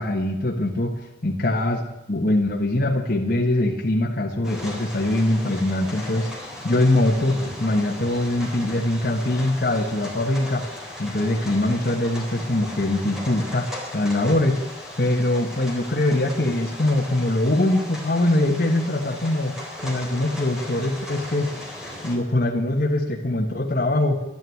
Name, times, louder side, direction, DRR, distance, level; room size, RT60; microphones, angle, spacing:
voice 1, 0.0-1.8 2.1-6.3 6.6-10.6 11.0-13.7 13.9-14.6 15.0-19.5 19.8-21.5 22.0-24.2, left 1 dB, 55° left, -1 dB, 1.5 m, -22 dB
sound 1, 4.4-22.1, left 1 dB, 5° right, 3.6 m, -37 dB
12.5 x 10.5 x 9.3 m, 0.92 s
head